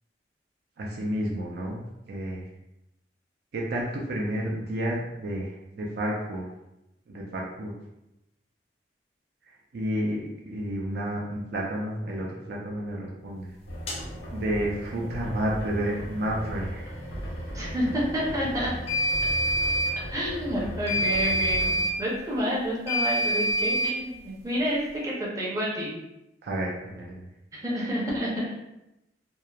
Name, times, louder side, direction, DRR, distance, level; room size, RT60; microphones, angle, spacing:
voice 1, 0.8-2.4 3.5-6.5 7.1-7.7 9.7-13.5 14.3-16.8 26.4-27.1, equal, 60° right, -2 dB, 0.4 m, -31 dB
sound 1, 13.7-21.8, equal, 85° left, 0.7 m, -37 dB
sound 2, 13.9-14.0 18.9-20.0 20.9-22.0 22.9-24.0, equal, 35° left, 0.5 m, -25 dB
voice 2, 17.5-18.7 20.1-25.9 27.5-28.5, equal, 20° right, -5 dB, 0.6 m, -29 dB
2.8 x 2.1 x 2.3 m, 0.90 s
head